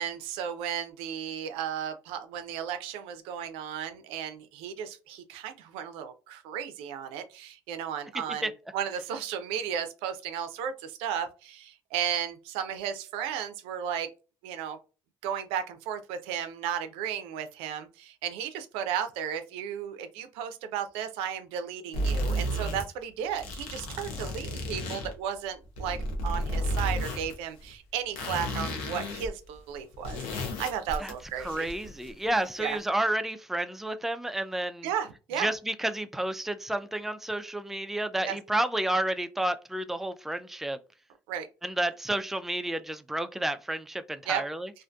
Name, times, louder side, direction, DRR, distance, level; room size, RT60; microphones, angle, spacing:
voice 1, 0.0-14.1 14.4-14.8 15.2-26.0 26.2-31.7 32.6-32.8 34.8-35.5 38.2-38.4 41.3-41.5 44.3-44.4, right 8 dB, 85° right, 0.4 m, -34 dB
sound 1, 21.9-22.8 23.3-25.1 25.6-27.3 27.6-27.7 28.2-29.3 29.6-29.7 29.9-32.4, equal, 85° left, 0.7 m, -32 dB
voice 2, 31.0-34.9 35.4-40.8 41.6-44.7, right 1 dB, 5° right, 0.3 m, -31 dB
2.5 x 2.4 x 2.2 m
supercardioid pair, 65°, 9 cm